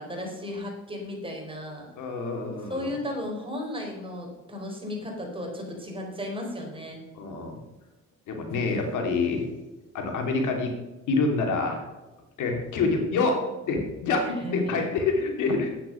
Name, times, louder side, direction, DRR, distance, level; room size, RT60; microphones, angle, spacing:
voice 1, 0.0-1.9 2.7-7.0 14.2-14.9, left 1 dB, 15° right, 0 dB, 4.2 m, -34 dB
voice 2, 2.0-2.9 7.1-7.6 8.3-9.4 9.9-10.7 11.1-11.8 12.4-13.4 13.7-15.7, left 3 dB, 80° left, 3 dB, 2.6 m, -26 dB
10.5 x 9.1 x 5.7 m, 1.1 s
cardioid pair, 90°, 30 cm